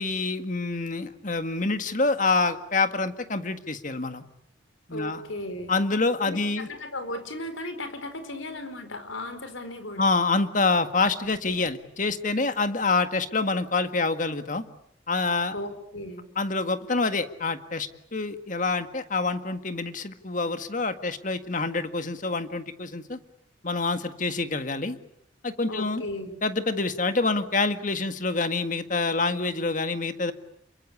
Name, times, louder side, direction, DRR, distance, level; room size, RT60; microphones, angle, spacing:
voice 1, 0.0-4.2 4.9-5.2 5.7-6.7 10.0-14.6 15.1-15.5 16.3-23.2 23.6-25.0 25.4-26.0 26.4-30.3, left 3 dB, 40° left, 9 dB, 1.8 m, -26 dB
voice 2, 4.9-5.7 6.2-10.1 15.5-16.3 25.7-26.3, left 1 dB, 85° left, 9 dB, 4.6 m, -36 dB
28.5 x 23.5 x 8.5 m, 0.71 s
head